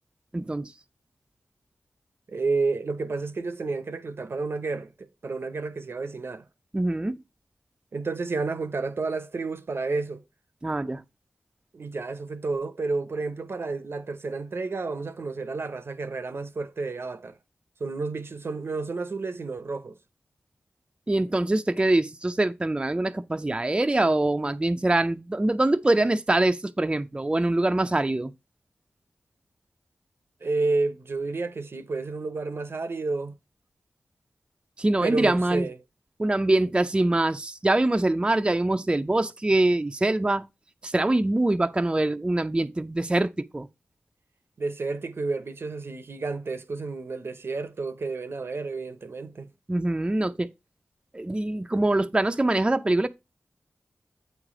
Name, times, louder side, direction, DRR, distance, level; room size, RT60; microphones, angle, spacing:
voice 1, 0.3-0.7 6.7-7.2 10.6-11.0 21.1-28.3 34.8-35.7 36.2-40.5 40.8-43.7 49.7-50.5 51.1-53.1, right 2 dB, 20° right, 0.4 m, -24 dB
voice 2, 2.3-6.4 7.9-10.2 11.7-17.3 17.8-20.0 30.4-33.3 35.0-35.8 44.6-49.5, right 3 dB, 65° right, 0.6 m, -30 dB
8.1 x 3.2 x 4.9 m
cardioid pair, 45°, 4 cm